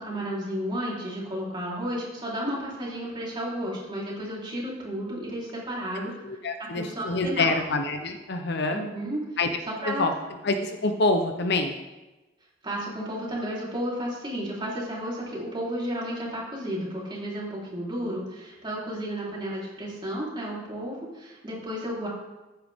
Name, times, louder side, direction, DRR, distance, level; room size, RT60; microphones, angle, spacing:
voice 1, 0.0-6.3 6.6-7.6 8.7-9.2 9.8-10.1 12.6-22.1, equal, 25° right, -5 dB, 3.8 m, -32 dB
voice 2, 6.2-8.8 9.4-9.5 9.9-10.1 10.4-11.8, left 2 dB, 60° left, 6 dB, 0.8 m, -26 dB
14.5 x 9.0 x 3.6 m, 1.1 s
head